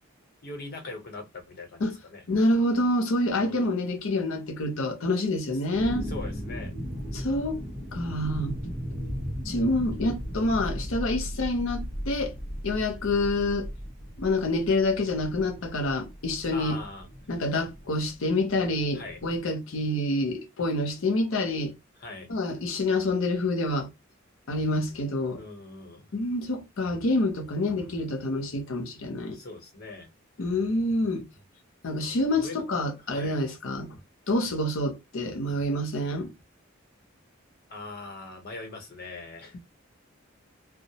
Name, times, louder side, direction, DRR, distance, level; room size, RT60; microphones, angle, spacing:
voice 1, 0.4-2.2 3.4-3.7 6.0-6.7 16.5-17.1 18.9-19.2 22.0-22.3 25.4-26.1 29.3-30.1 32.3-32.6 33.1-33.4 37.7-39.6, left 3 dB, 50° left, 0.8 m, -41 dB
voice 2, 2.3-6.1 7.1-7.6 7.9-8.6 9.5-12.3 12.6-13.7 14.2-16.8 17.3-21.7 22.3-23.9 24.5-25.4 26.1-29.4 30.4-31.2 31.8-34.0 34.3-36.3, left 1 dB, 75° left, 0.7 m, -27 dB
sound 1, 5.7-19.4, equal, 25° right, 0.9 m, -37 dB
2.3 x 2.0 x 2.8 m
head